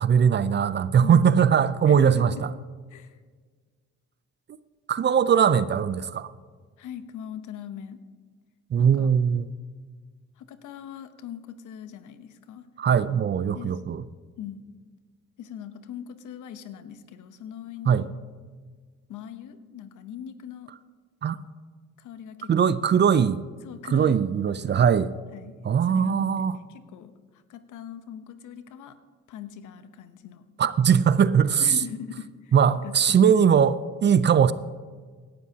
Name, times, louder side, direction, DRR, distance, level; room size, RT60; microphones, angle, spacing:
voice 1, 0.0-2.3 4.9-6.3 8.7-9.5 12.8-14.0 17.9-18.1 21.2-21.4 22.5-23.4 23.9-25.1 25.6-26.5 30.6-31.8 32.5-34.5, right 7 dB, 35° right, 16 dB, 0.5 m, -20 dB
voice 2, 1.0-1.5 1.9-2.4 2.9-3.2 6.8-8.0 8.8-9.1 10.4-12.7 13.5-13.8 14.4-14.7 15.4-18.1 19.1-20.7 22.0-22.8 23.6-25.0 25.3-25.6 25.9-29.0 29.3-30.5 31.6-32.5 32.8-33.4, left 9 dB, 80° left, 11 dB, 0.9 m, -40 dB
17.0 x 12.0 x 2.8 m, 1.5 s
cardioid pair, 90°, 30 cm